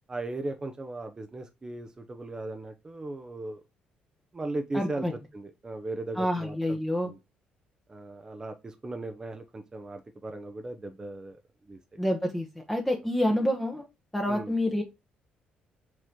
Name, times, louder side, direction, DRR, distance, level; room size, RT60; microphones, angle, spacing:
voice 1, 0.1-3.6 4.3-5.1 5.3-6.8 7.0-7.2 7.9-11.4 11.7-11.8 14.3-14.5, right 2 dB, 25° right, 6 dB, 0.8 m, -37 dB
voice 2, 4.7-5.1 6.1-7.1 12.0-13.8 14.1-14.8, left 1 dB, 10° left, 1 dB, 1.2 m, -28 dB
6.3 x 3.2 x 5.2 m, 0.25 s
cardioid pair, 90°, 3 cm